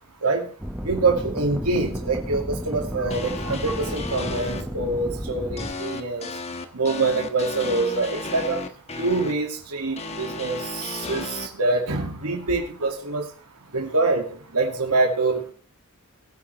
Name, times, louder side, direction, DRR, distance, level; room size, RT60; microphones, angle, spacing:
sound 1, 0.6-5.7, equal, 5° right, 1.2 m, -33 dB
voice 1, 0.8-6.3 6.7-8.6 9.0-13.2 13.7-14.2 14.5-15.5, right 3 dB, 85° right, 1 dB, 2.4 m, -25 dB
sound 2, 3.1-4.6 5.6-9.3 10.0-11.5, left 3 dB, 30° left, 1.3 m, -34 dB
21.5 x 9.3 x 3.4 m, 0.43 s
head